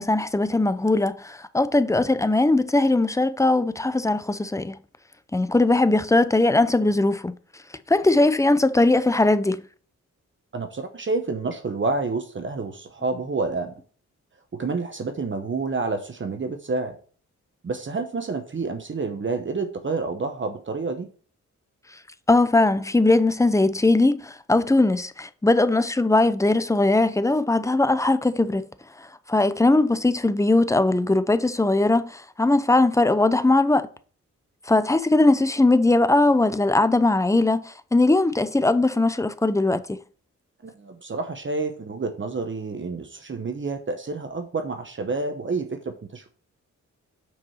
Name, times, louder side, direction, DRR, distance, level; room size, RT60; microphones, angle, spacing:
voice 1, 0.0-4.8 5.3-7.3 7.9-9.6 22.3-28.7 29.0-33.9 34.7-40.0, left 2 dB, 10° left, 0.6 m, -20 dB
voice 2, 10.5-13.7 14.5-17.0 17.6-21.1 40.6-46.3, right 3 dB, 40° right, 0.9 m, -29 dB
6.0 x 4.8 x 5.6 m
cardioid pair, 65°, 31 cm